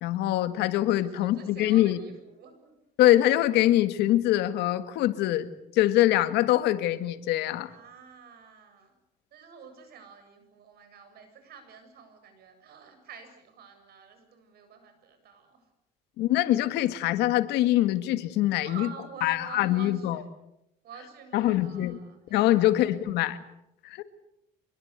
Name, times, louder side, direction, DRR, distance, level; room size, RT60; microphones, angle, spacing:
voice 1, 0.0-2.0 3.0-5.5 5.7-7.7 16.2-18.9 19.2-20.2 21.3-22.0 22.3-23.4 23.8-24.0, left 14 dB, 90° left, 11 dB, 2.0 m, -24 dB
voice 2, 0.9-2.7 7.7-8.9 9.3-15.7 18.5-20.2 20.8-23.0, right 6 dB, 65° right, 8 dB, 7.5 m, -48 dB
25.5 x 22.0 x 8.3 m, 0.82 s
cardioid pair, 110°, 17 cm